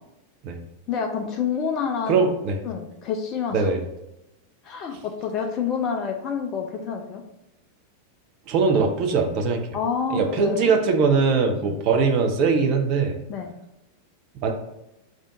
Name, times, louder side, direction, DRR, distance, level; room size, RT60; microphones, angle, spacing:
voice 1, 0.9-2.2 2.6-3.7 4.6-7.2 9.7-10.7 11.6-11.8 13.3-13.5, left 6 dB, 35° left, 3 dB, 0.4 m, -28 dB
voice 2, 2.1-2.6 3.5-3.8 8.5-9.6 10.1-13.1 14.4-14.5, right 5 dB, 40° right, 4 dB, 0.5 m, -21 dB
3.4 x 2.5 x 4.0 m, 0.90 s
figure-of-eight pair, 90°, 0 cm